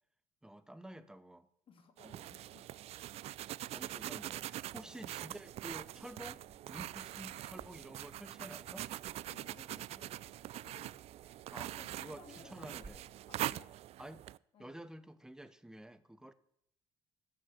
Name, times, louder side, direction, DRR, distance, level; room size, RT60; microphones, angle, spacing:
voice 1, 0.4-1.5 2.0-2.2 3.7-8.9 11.5-13.0 14.0-14.3 14.6-16.3, right 1 dB, 5° right, 13 dB, 0.9 m, -50 dB
voice 2, 1.7-3.0 4.7-5.0 9.2-11.0 11.8-13.8 14.5-14.8, left 6 dB, 50° left, 6 dB, 2.4 m, -60 dB
sound 1, 2.0-14.4, right 14 dB, 60° right, 0.4 m, -43 dB
sound 2, 5.2-13.3, right 3 dB, 20° right, 2.2 m, -64 dB
14.0 x 6.0 x 7.8 m, 0.72 s
cardioid pair, 105°, 12 cm